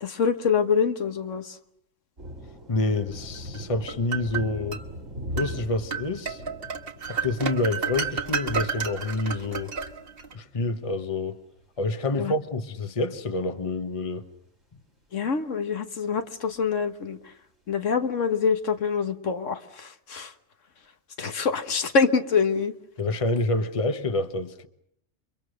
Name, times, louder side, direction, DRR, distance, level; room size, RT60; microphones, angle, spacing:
voice 1, 0.0-1.6 12.2-12.3 15.1-17.2 17.7-20.3 21.2-22.7, left 5 dB, 75° left, 1.6 m, -25 dB
sound 1, 2.2-11.2 11.6-11.7 13.8-13.9 16.2-16.3 16.5-16.6 17.8-17.9 18.6-18.7, equal, 85° right, 5.0 m, -41 dB
voice 2, 2.7-4.8 5.4-6.4 7.1-9.7 10.3-11.4 11.8-14.3 23.0-24.7, left 2 dB, 30° left, 1.1 m, -27 dB
sound 2, 3.5-4.8 5.4-5.5 5.9-10.3, right 6 dB, 50° right, 1.6 m, -31 dB
29.0 x 24.0 x 6.5 m
omnidirectional pair, 1.3 m